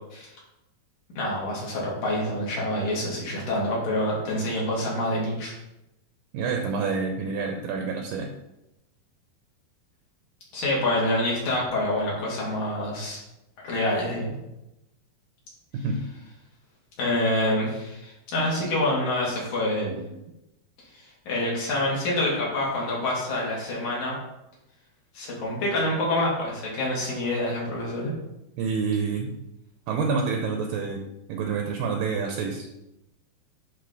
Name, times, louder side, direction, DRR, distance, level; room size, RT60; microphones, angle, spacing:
voice 1, 1.2-5.5 10.5-13.2 13.6-14.3 17.0-19.9 21.3-24.2 25.1-28.1, left 1 dB, 55° left, -5 dB, 3.5 m, -26 dB
voice 2, 6.3-8.3 15.7-16.0 18.6-18.7 19.9-20.1 28.6-29.3 29.9-31.0 31.3-32.7, right 5 dB, 75° right, 2 dB, 2.3 m, -28 dB
11.0 x 3.8 x 4.0 m, 0.90 s
omnidirectional pair, 4.3 m